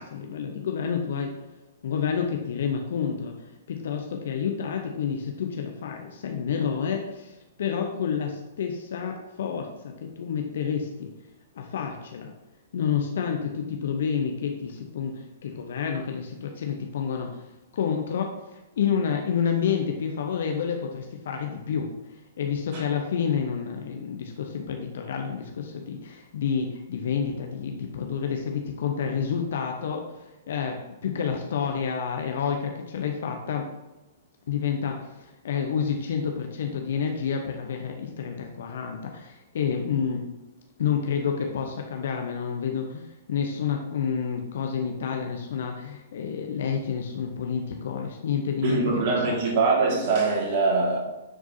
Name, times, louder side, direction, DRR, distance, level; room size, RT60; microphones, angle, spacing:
voice 1, 0.0-1.3 1.8-11.1 11.6-12.3 12.7-33.7 34.5-40.2 40.8-48.8 49.1-49.4, left 7 dB, 60° left, 0.8 m, -29 dB
voice 2, 48.6-51.0, right 3 dB, 45° right, 2.0 m, -23 dB
9.9 x 4.7 x 2.8 m
figure-of-eight pair, 110°, 0 cm